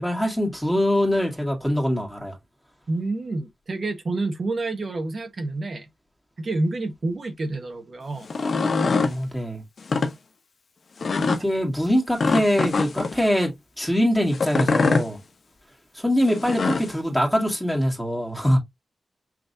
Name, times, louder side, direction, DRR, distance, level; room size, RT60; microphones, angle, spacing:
voice 1, 0.0-2.4 9.0-9.6 11.2-15.2 15.9-18.6, equal, 5° left, 2.1 m, -23 dB
voice 2, 2.9-5.9 6.4-8.3 11.3-11.4, right 2 dB, 55° right, 1.3 m, -28 dB
sound 1, 8.2-9.1 9.8-10.1 11.0-11.4 12.2-13.1 14.3-15.1 16.3-16.9, left 4 dB, 60° left, 0.8 m, -23 dB
6.0 x 3.3 x 2.6 m
wide cardioid pair, 90°, 0 cm